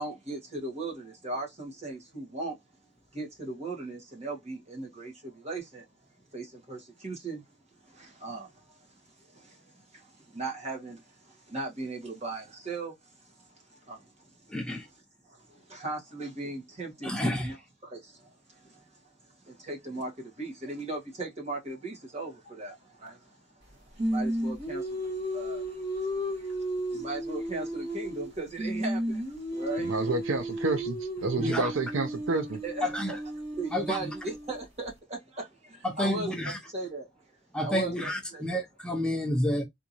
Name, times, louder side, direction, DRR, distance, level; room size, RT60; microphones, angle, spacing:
voice 1, 0.0-2.6 3.1-5.9 6.3-7.4 7.8-15.0 15.3-17.6 17.8-30.1 31.4-31.5 32.6-33.2 33.5-35.5 36.0-37.2 37.6-38.6, right 2 dB, 35° right, 1.5 m, -39 dB
voice 2, 14.5-14.9 17.0-17.5 31.4-31.7 32.8-33.1 33.7-34.0 36.0-36.6 37.5-39.7, left 1 dB, 5° left, 0.5 m, -29 dB
Singing, 24.0-28.3 28.6-34.6, equal, 50° right, 2.3 m, -33 dB
voice 3, 29.8-32.6, right 3 dB, 75° right, 0.6 m, -29 dB
3.5 x 2.6 x 2.9 m
head